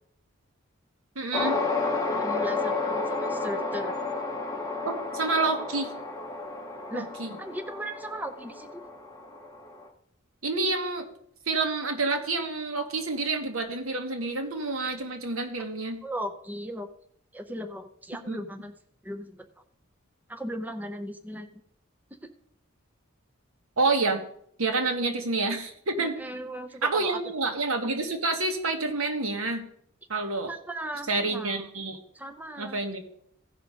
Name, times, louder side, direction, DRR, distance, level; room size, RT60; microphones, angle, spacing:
voice 1, 1.1-1.6 4.8-5.9 6.9-7.4 10.4-11.1 11.5-16.0 18.3-18.4 23.8-24.2 24.6-26.1 26.8-29.7 30.1-30.5 31.1-32.0 32.6-33.0, right 3 dB, 85° right, 5 dB, 1.5 m, -28 dB
sound 1, 1.3-9.9, left 3 dB, 15° left, 1.2 m, -31 dB
voice 2, 2.1-4.0 6.9-7.1 7.4-8.7 16.0-16.9 17.3-18.7 19.0-19.4 20.3-21.5 22.2-22.3 26.0-27.2 30.5-31.6 32.1-32.8, equal, 10° right, 7 dB, 0.6 m, -37 dB
16.0 x 5.4 x 5.0 m, 0.70 s
head